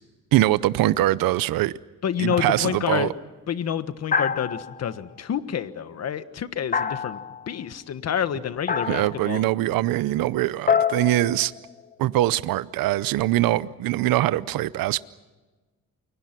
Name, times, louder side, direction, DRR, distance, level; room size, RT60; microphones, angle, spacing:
voice 1, 0.3-1.7 2.2-3.1 8.9-11.5 12.0-15.0, right 15 dB, 85° right, 0.7 m, -22 dB
voice 2, 2.0-3.1 3.5-7.2 7.5-9.4, left 8 dB, 50° left, 1.4 m, -28 dB
sound 1, 2.3-2.8 4.1-5.0 6.7-7.5 8.7-9.2 10.7-11.9, left 6 dB, 25° left, 0.8 m, -26 dB
29.5 x 23.0 x 6.0 m
cardioid pair, 125°, 34 cm